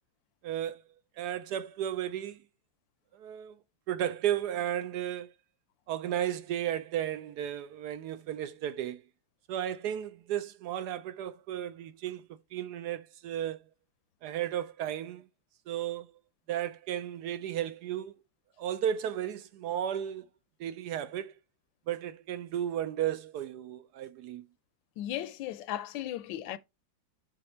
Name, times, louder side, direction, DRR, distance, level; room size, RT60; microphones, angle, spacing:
voice 1, 0.4-0.8 1.2-2.4 3.1-3.6 3.9-5.3 5.9-9.0 9.5-13.6 14.2-15.3 15.7-16.1 16.5-18.1 18.6-20.3 20.6-21.3 21.9-24.5, right 10 dB, 70° right, 1.0 m, -34 dB
voice 2, 25.0-26.6, left 12 dB, 85° left, 1.3 m, -36 dB
7.7 x 3.4 x 4.3 m
omnidirectional pair, 2.0 m